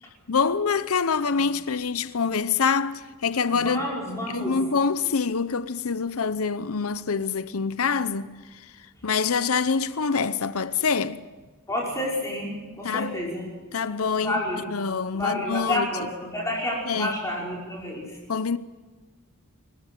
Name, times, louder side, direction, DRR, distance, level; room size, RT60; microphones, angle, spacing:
voice 1, 0.3-3.8 4.3-8.3 9.0-11.2 12.8-13.1 13.7-14.4 14.7-15.9 16.9-17.1 18.3-18.6, left 5 dB, 75° left, 0.8 m, -25 dB
voice 2, 3.5-4.6 11.7-13.4 14.2-14.7 15.1-18.2, left 1 dB, 15° left, 5.4 m, -29 dB
27.5 x 15.5 x 9.2 m
head